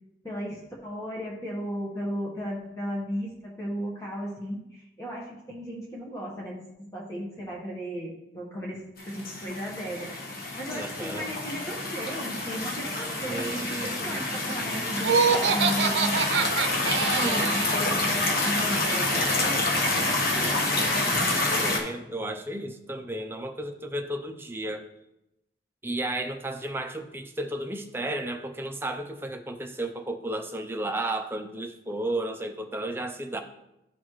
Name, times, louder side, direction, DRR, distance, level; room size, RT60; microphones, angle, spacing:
voice 1, 0.2-10.2 10.5-16.2 16.8-20.9, equal, 20° left, -4 dB, 1.3 m, -35 dB
sound 1, 9.0-21.8, left 2 dB, 55° left, 1.2 m, -27 dB
voice 2, 10.7-11.3 13.3-14.0 17.2-17.6 21.5-24.8 25.8-33.4, right 1 dB, 15° right, 5 dB, 0.5 m, -33 dB
Laughter, 15.0-17.8, right 5 dB, 85° right, 0.6 m, -25 dB
12.0 x 4.1 x 3.1 m, 0.87 s
head